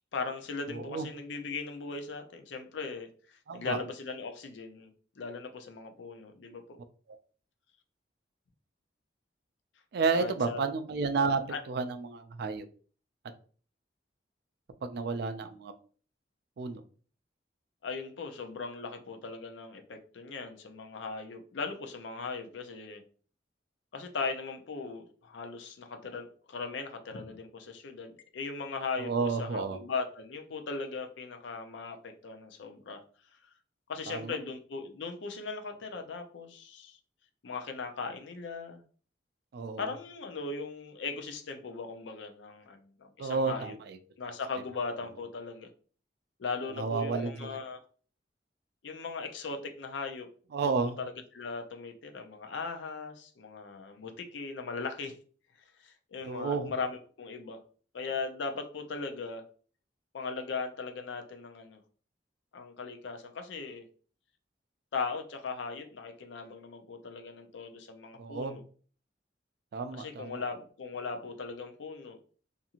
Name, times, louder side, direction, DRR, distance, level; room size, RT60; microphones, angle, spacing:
voice 1, 0.1-6.8 10.1-10.7 11.5-11.6 17.8-23.0 23.9-33.0 33.9-37.0 37.4-38.8 39.8-43.8 44.2-45.7 46.4-47.8 48.8-50.3 50.6-55.2 55.8-57.6 57.9-59.4 60.1-61.8 62.5-63.8 64.9-68.6 69.9-72.2, left 4 dB, 80° left, 5 dB, 0.5 m, -38 dB
voice 2, 0.7-1.1 3.5-3.8 7.1-7.2 9.9-11.4 11.7-12.7 14.8-15.7 16.6-16.8 29.0-29.8 34.1-34.4 39.5-39.9 43.2-44.0 46.8-47.6 50.5-51.0 56.3-56.7 68.2-68.6 69.7-70.4, right 4 dB, 60° right, 8 dB, 0.3 m, -31 dB
2.5 x 2.4 x 2.8 m, 0.42 s
head